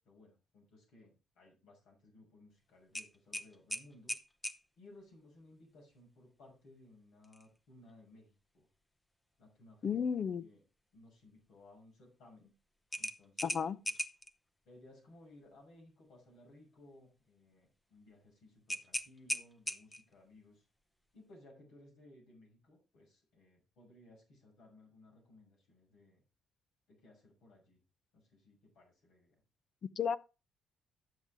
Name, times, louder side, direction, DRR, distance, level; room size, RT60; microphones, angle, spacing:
voice 1, 0.0-4.1 4.8-8.7 9.4-10.0 10.4-10.6 10.9-12.5 13.0-13.6 13.8-13.9 14.6-20.6 21.1-26.2 26.9-27.8 28.1-29.4, left 2 dB, 85° left, 6.0 m, -60 dB
sound 1, 2.9-4.6 7.2-7.5 7.9-8.0 12.9-14.3 18.7-20.1, left 1 dB, 10° left, 0.7 m, -39 dB
voice 2, 9.8-10.4 13.4-13.8 30.0-30.2, left 7 dB, 50° left, 0.7 m, -33 dB
12.0 x 7.5 x 3.5 m
cardioid pair, 90°, 0 cm